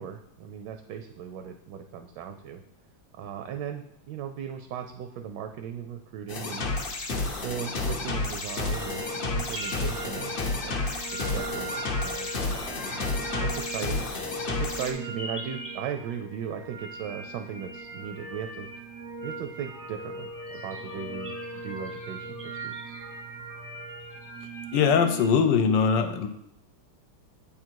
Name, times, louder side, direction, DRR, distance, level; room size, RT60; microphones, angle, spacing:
voice 1, 0.0-2.6 3.1-6.7 7.4-9.0 9.3-10.3 10.6-10.8 11.1-12.6 12.8-13.2 13.4-14.0 14.5-18.7 19.2-20.3 20.6-21.3 21.6-22.9, right 8 dB, 75° right, 6 dB, 1.1 m, -37 dB
sound 1, 6.3-14.9, left 3 dB, 55° left, 0.6 m, -31 dB
sound 2, 8.5-25.3, right 2 dB, 15° right, 0.4 m, -39 dB
voice 2, 24.7-26.3, left 6 dB, 75° left, 8 dB, 1.2 m, -21 dB
8.6 x 3.8 x 4.5 m, 0.78 s
omnidirectional pair, 2.1 m